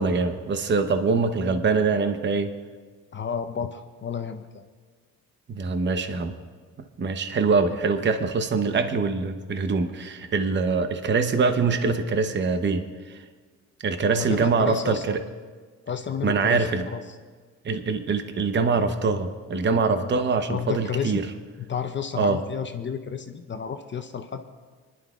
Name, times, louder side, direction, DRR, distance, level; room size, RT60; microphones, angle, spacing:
voice 1, 0.0-2.5 5.5-6.3 7.0-13.2 13.8-15.2 16.2-16.8 17.6-21.2 22.2-22.4, right 4 dB, 40° right, 8 dB, 0.8 m, -24 dB
voice 2, 3.1-4.6 14.1-15.2 15.9-17.2 20.5-21.2 21.7-24.4, left 7 dB, 40° left, 7 dB, 0.7 m, -31 dB
26.0 x 11.0 x 2.4 m, 1.5 s
cardioid pair, 90°, 30 cm